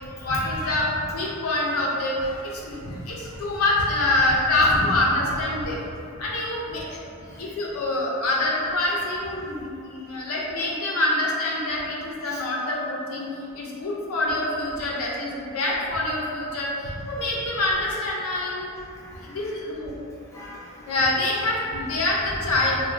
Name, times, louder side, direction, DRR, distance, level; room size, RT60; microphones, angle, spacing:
voice 1, 0.2-5.8 6.2-7.0 7.4-13.3 13.5-16.7 17.1-18.7 19.3-19.9 20.9-22.8, left 2 dB, 85° left, -4 dB, 0.5 m, -25 dB
voice 2, 7.1-7.6 12.3-12.4 16.9-17.0 18.9-19.5 20.3-21.1, left 1 dB, 15° left, -6 dB, 0.3 m, -45 dB
3.1 x 2.2 x 2.5 m, 2.5 s
head